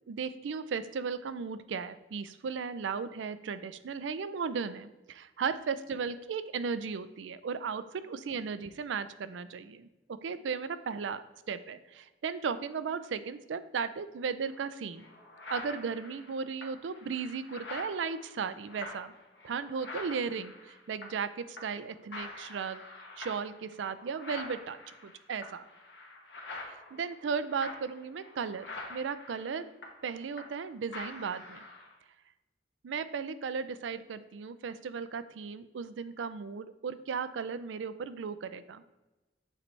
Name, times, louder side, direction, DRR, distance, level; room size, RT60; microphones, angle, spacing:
voice 1, 0.1-9.9 10.2-15.0 15.5-19.1 19.4-22.8 23.2-25.6 26.9-29.7 30.0-31.6 32.8-38.8, right 5 dB, 90° right, 13 dB, 0.4 m, -36 dB
sound 1, 14.5-14.6 15.0-21.3 21.6-21.8 22.1-30.6 30.9-31.9, left 2 dB, 75° left, 1.3 m, -46 dB
7.6 x 3.2 x 4.5 m, 1.1 s
head